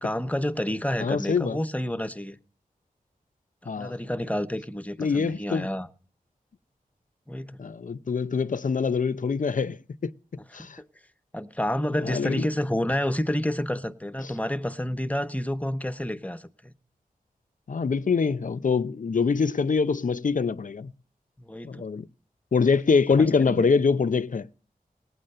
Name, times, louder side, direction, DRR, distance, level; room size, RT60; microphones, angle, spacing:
voice 1, 0.0-2.4 3.6-5.9 7.3-7.6 10.8-10.9 11.3-16.7 21.4-21.8 23.4-23.7, left 1 dB, 10° left, 0.9 m, -29 dB
voice 2, 1.0-1.6 3.7-4.0 5.0-5.7 7.6-10.1 10.5-10.8 12.0-12.5 17.7-20.9 21.6-22.1 22.5-24.5, left 5 dB, 60° left, 0.6 m, -24 dB
18.0 x 9.5 x 6.6 m
wide cardioid pair, 80°, 15 cm